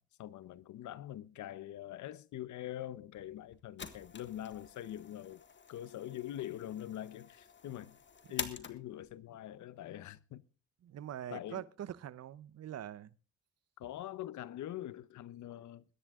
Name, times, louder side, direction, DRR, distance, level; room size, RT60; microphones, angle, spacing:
voice 1, 0.0-8.0 8.3-10.4 11.3-11.6 13.8-15.8, left 12 dB, 75° left, 0.9 m, -44 dB
sound 1, 3.1-9.2, left 6 dB, 40° left, 1.6 m, -47 dB
voice 2, 10.8-13.1, right 11 dB, 55° right, 0.9 m, -44 dB
21.5 x 10.0 x 3.7 m
cardioid pair, 90°, 30 cm